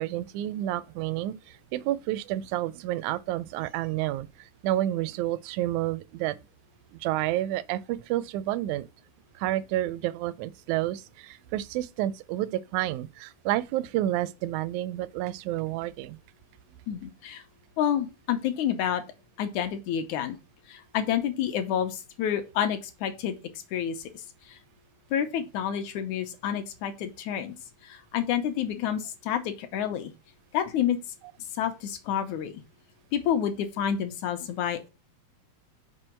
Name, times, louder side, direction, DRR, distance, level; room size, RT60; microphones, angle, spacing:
voice 1, 0.0-6.4 7.0-8.9 9.4-16.2, right 14 dB, 80° right, 1.8 m, -30 dB
voice 2, 16.9-17.4 17.8-19.0 19.4-20.4 20.7-23.4 23.7-24.6 25.1-27.5 27.8-30.1 30.5-31.0 31.6-32.6 33.1-34.9, left 9 dB, 75° left, 2.2 m, -29 dB
6.1 x 4.8 x 4.4 m
omnidirectional pair, 3.6 m